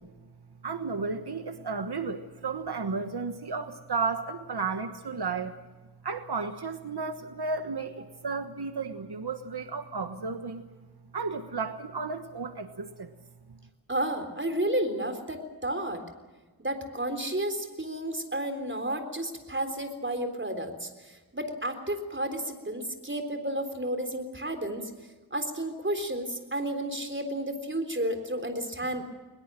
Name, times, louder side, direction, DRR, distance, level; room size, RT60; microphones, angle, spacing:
voice 1, 0.6-5.6 6.0-10.6 11.1-13.1, right 4 dB, 85° right, 8 dB, 1.3 m, -33 dB
voice 2, 13.9-16.0 16.6-24.9 25.3-29.0, right 1 dB, 30° right, 6 dB, 3.7 m, -32 dB
22.0 x 21.0 x 7.6 m, 1.3 s
wide cardioid pair, 70°, 39 cm